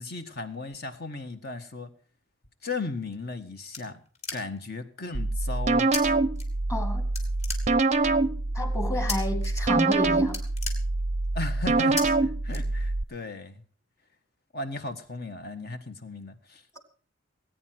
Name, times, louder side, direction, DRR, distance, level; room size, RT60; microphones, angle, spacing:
voice 1, 0.0-1.9 2.6-4.0 4.3-6.0 11.3-13.6 14.5-16.8, left 3 dB, 50° left, 8 dB, 1.6 m, -36 dB
sound 1, 3.1-4.8 5.9-6.0 6.3-6.9 7.1-8.1 9.1-9.5 9.8-10.0 10.2-11.4 12.0-12.1 12.5-13.1, left 3 dB, 30° left, 2.9 m, -36 dB
sound 2, 5.1-13.0, right 3 dB, 35° right, 0.6 m, -25 dB
voice 2, 6.7-7.1 8.5-10.5, left 1 dB, 15° left, 8 dB, 2.3 m, -31 dB
19.5 x 9.3 x 6.0 m, 0.41 s
head